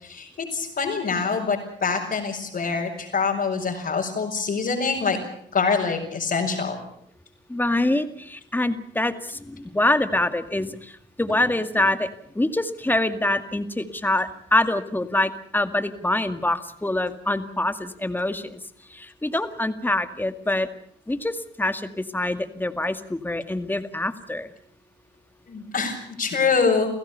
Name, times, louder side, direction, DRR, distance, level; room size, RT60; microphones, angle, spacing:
voice 1, 0.0-5.2 5.5-6.8 25.5-26.9, left 5 dB, 50° left, -3 dB, 5.6 m, -25 dB
voice 2, 7.5-10.9 11.2-12.1 12.4-18.6 18.9-20.7 21.1-24.5, left 1 dB, 10° left, 9 dB, 2.1 m, -25 dB
29.5 x 16.0 x 6.9 m, 0.66 s
cardioid pair, 90°, 20 cm